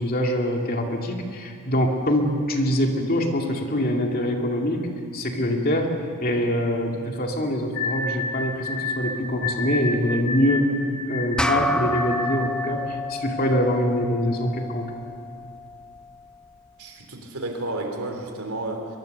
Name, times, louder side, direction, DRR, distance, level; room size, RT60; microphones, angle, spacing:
voice 1, 0.0-4.9 5.1-5.9 6.2-10.7 11.1-14.9, equal, 45° left, 2 dB, 2.4 m, -24 dB
sound 1, 7.7-12.6, left 2 dB, 75° left, 3.5 m, -30 dB
sound 2, 11.4-16.1, left 2 dB, 5° left, 0.5 m, -30 dB
voice 2, 16.8-18.9, right 2 dB, 75° right, 3 dB, 3.5 m, -31 dB
23.0 x 22.5 x 6.7 m, 2.3 s
head